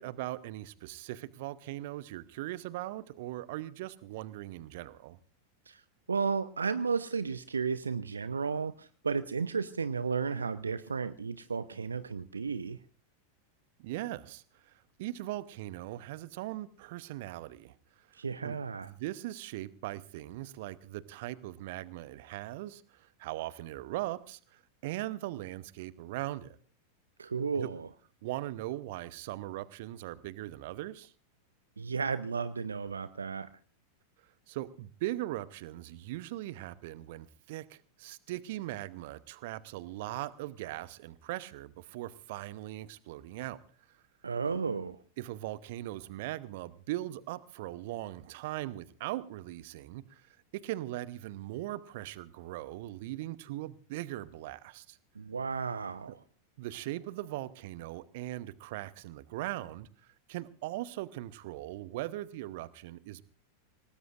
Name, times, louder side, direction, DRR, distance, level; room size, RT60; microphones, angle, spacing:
voice 1, 0.0-5.2 13.8-14.7 15.0-18.6 18.8-26.6 27.6-27.7 28.2-31.1 34.5-43.6 45.2-50.4 50.6-55.0 56.1-56.2 56.6-59.9 60.3-63.2, right 16 dB, 50° right, 0.9 m, -40 dB
voice 2, 6.1-12.8 18.1-18.9 27.2-27.9 31.8-33.5 44.2-45.0 55.2-56.2, right 5 dB, 75° right, 0.7 m, -33 dB
26.0 x 19.0 x 2.5 m
figure-of-eight pair, 90°, 0 cm